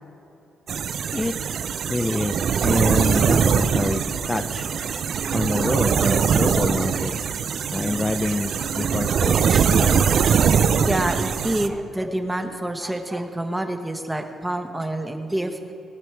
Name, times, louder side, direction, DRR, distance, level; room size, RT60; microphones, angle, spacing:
sound 1, 0.7-11.7, right 7 dB, 65° right, 0.6 m, -22 dB
voice 1, 1.9-4.0 4.3-4.7 5.3-7.1 7.7-10.0, left 2 dB, 15° left, 6 dB, 0.6 m, -26 dB
voice 2, 7.7-8.1 9.5-9.7 10.9-15.7, right 1 dB, 10° right, 6 dB, 1.2 m, -28 dB
20.0 x 9.1 x 4.7 m, 2.8 s
cardioid pair, 105°, 0 cm